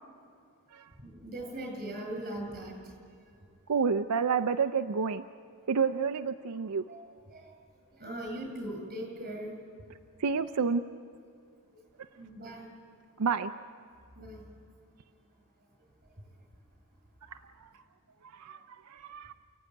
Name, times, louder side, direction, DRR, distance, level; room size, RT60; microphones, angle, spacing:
voice 1, 1.0-2.8 6.9-7.5 7.9-9.6 12.1-12.7 14.2-14.4, right 1 dB, 40° right, 2 dB, 7.7 m, -40 dB
voice 2, 3.7-5.2 5.7-6.8 10.2-10.8 13.2-13.5 17.3-17.7 18.3-19.3, right 5 dB, 85° right, 8 dB, 0.6 m, -29 dB
29.0 x 15.5 x 9.6 m, 2.3 s
head